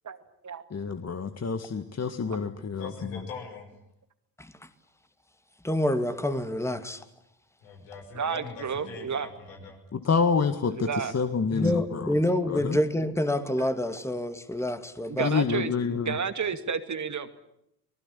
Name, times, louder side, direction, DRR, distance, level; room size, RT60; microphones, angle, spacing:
voice 1, 0.7-2.9 9.9-10.9 11.1-12.1 12.5-12.8 15.2-16.1, left 5 dB, 35° left, 8 dB, 1.9 m, -27 dB
voice 2, 2.8-3.7 7.6-9.8, left 5 dB, 80° left, 3 dB, 6.0 m, -42 dB
voice 3, 5.6-7.0 11.5-15.3, left 1 dB, 5° left, 10 dB, 2.4 m, -27 dB
voice 4, 8.1-9.3 10.7-11.1 15.1-17.3, right 6 dB, 40° right, 10 dB, 2.3 m, -31 dB
26.0 x 19.5 x 10.0 m, 0.79 s
hypercardioid pair, 50°, 46 cm